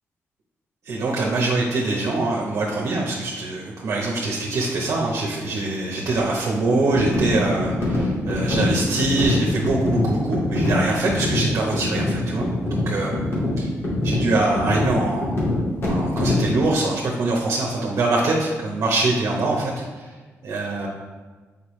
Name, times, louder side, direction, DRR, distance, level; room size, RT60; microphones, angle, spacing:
voice 1, 0.8-13.1 13.6-13.7 14.0-15.3 15.8-19.7 20.0-20.1 20.4-20.9, right 2 dB, 65° right, -2 dB, 1.0 m, -23 dB
sound 1, 6.9-16.6, left 1 dB, 50° left, 2.0 m, -24 dB
6.8 x 5.3 x 3.2 m, 1.3 s
cardioid pair, 105°, 5 cm